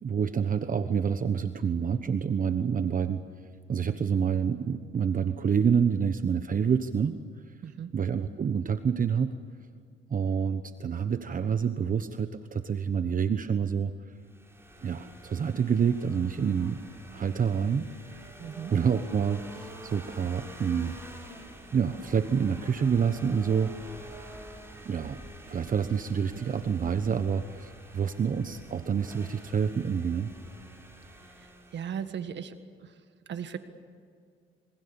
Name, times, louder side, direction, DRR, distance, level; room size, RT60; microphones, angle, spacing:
voice 1, 0.0-3.2 3.7-7.2 7.5-7.6 7.9-9.3 10.1-14.1 14.8-16.8 17.1-18.2 18.7-20.9 21.7-23.7 24.8-25.2 25.5-30.3, right 7 dB, 45° right, 10 dB, 1.1 m, -27 dB
sound 1, 14.2-32.1, right 1 dB, 10° right, 7.1 m, -47 dB
voice 2, 18.4-18.7 31.4-32.5 32.8-32.9 33.3-33.6, right 8 dB, 65° right, 9 dB, 1.7 m, -37 dB
27.5 x 24.5 x 7.1 m, 2.2 s
cardioid pair, 90°, 20 cm